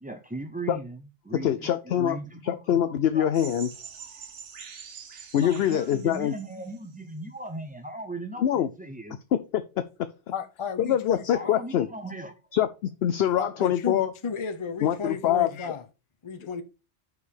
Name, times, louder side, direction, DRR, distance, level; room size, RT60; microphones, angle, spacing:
voice 1, 0.0-3.3 5.4-9.2 11.3-12.4, right 2 dB, 10° right, 0.4 m, -38 dB
voice 2, 1.4-2.2 2.4-3.7 5.3-6.3 8.4-8.7 9.3-10.1 10.8-11.9 12.5-14.1 14.8-15.5, left 10 dB, 65° left, 0.8 m, -24 dB
sound 1, 3.3-7.0, right 7 dB, 75° right, 1.3 m, -45 dB
voice 3, 10.3-11.5 13.4-15.8 16.2-16.6, left 5 dB, 30° left, 0.7 m, -33 dB
5.4 x 4.7 x 6.3 m
omnidirectional pair, 1.2 m